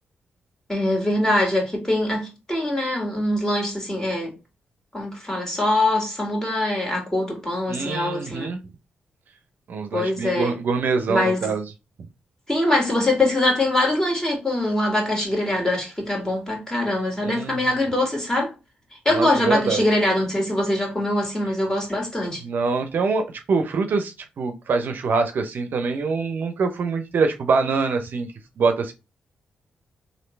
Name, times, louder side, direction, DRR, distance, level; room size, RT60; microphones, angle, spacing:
voice 1, 0.7-4.3 4.9-8.5 9.9-10.6 11.1-11.4 12.5-18.5 19.1-22.4, left 1 dB, 15° left, 2.0 m, -23 dB
voice 2, 7.7-8.6 9.7-11.6 17.2-17.6 19.1-19.9 22.4-28.3 28.6-28.9, right 4 dB, 65° right, 0.5 m, -24 dB
3.1 x 2.6 x 3.2 m
supercardioid pair, 55°, 4 cm